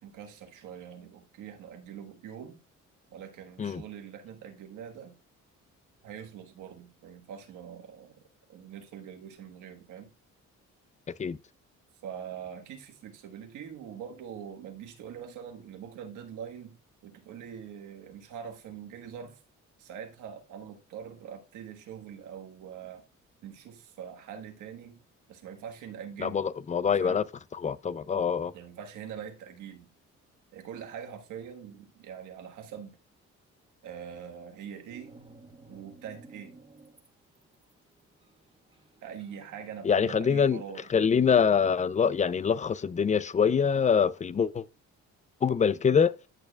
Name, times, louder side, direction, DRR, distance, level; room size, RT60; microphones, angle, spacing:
voice 1, 0.0-2.6 3.1-5.2 6.0-8.2 8.5-10.1 12.0-19.4 19.8-23.0 23.4-25.0 25.3-26.5 26.9-27.3 28.5-29.9 30.5-33.0 33.8-35.1 35.7-36.6 39.0-40.9, right 8 dB, 85° right, 1.5 m, -43 dB
voice 2, 26.2-27.2 27.6-28.5 39.8-40.6 40.9-44.6 45.4-46.1, left 6 dB, 25° left, 0.5 m, -24 dB
sound 1, 34.9-37.1 37.4-40.8, right 3 dB, 20° right, 1.5 m, -54 dB
10.5 x 6.5 x 2.3 m
cardioid pair, 90°, 30 cm